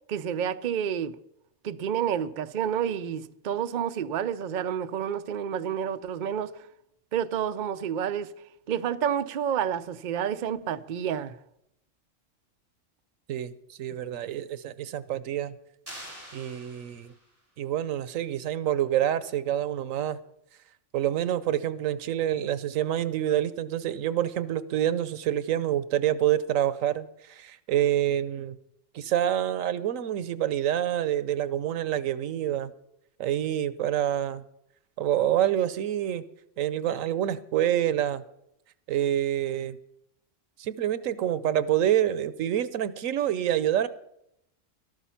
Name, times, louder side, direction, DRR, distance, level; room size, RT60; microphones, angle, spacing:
voice 1, 0.1-1.2 1.6-6.6 7.1-8.3 8.7-11.4, right 8 dB, 50° right, 0.6 m, -29 dB
voice 2, 13.8-15.6 16.3-17.1 17.6-20.2 20.9-28.6 28.9-32.7 33.2-34.4 35.0-36.2 36.6-38.2 38.9-39.8 40.6-43.9, right 11 dB, 90° right, 1.1 m, -27 dB
sound 1, 15.9-17.4, equal, 30° right, 6.5 m, -45 dB
13.5 x 12.5 x 5.7 m
omnidirectional pair, 1.3 m